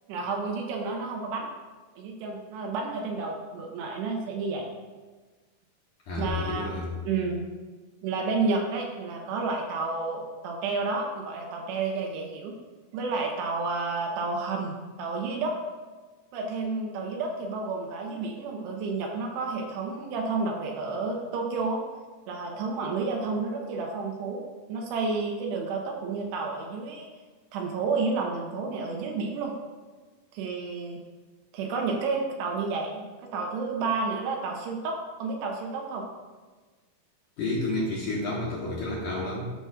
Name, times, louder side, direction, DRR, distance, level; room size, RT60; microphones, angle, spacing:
voice 1, 0.1-1.5 2.0-4.7 6.2-6.7 7.1-7.5 8.0-12.6 12.9-15.5 16.3-21.8 22.3-27.1 27.5-29.5 30.3-31.0 31.5-36.0, right 4 dB, 80° right, 1 dB, 2.9 m, -30 dB
voice 2, 6.1-6.9 37.4-39.5, left 2 dB, 65° left, -6 dB, 2.3 m, -30 dB
12.5 x 5.9 x 2.4 m, 1.3 s
omnidirectional pair, 5.1 m